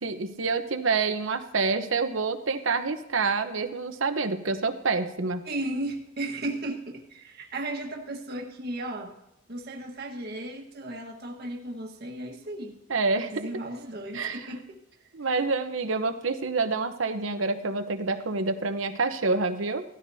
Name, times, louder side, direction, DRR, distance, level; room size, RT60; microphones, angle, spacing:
voice 1, 0.0-5.4 12.9-13.3 14.1-14.5 15.1-19.8, right 4 dB, 80° right, 8 dB, 0.9 m, -27 dB
voice 2, 5.4-9.2 9.5-12.8 13.3-14.8, right 1 dB, 55° right, 1 dB, 1.5 m, -35 dB
17.5 x 13.5 x 2.8 m, 0.88 s
head